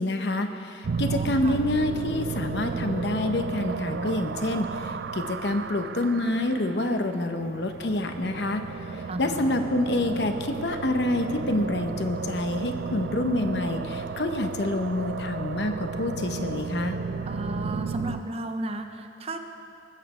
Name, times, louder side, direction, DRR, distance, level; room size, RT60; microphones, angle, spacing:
voice 1, 0.0-8.6 8.9-17.0, left 1 dB, 70° left, 6 dB, 0.9 m, -27 dB
sound 1, 0.8-18.2, right 5 dB, 70° right, 0.4 m, -33 dB
voice 2, 0.9-1.6 9.1-9.5 17.3-19.4, right 2 dB, 35° right, 6 dB, 0.7 m, -34 dB
20.0 x 8.2 x 5.0 m, 2.5 s
head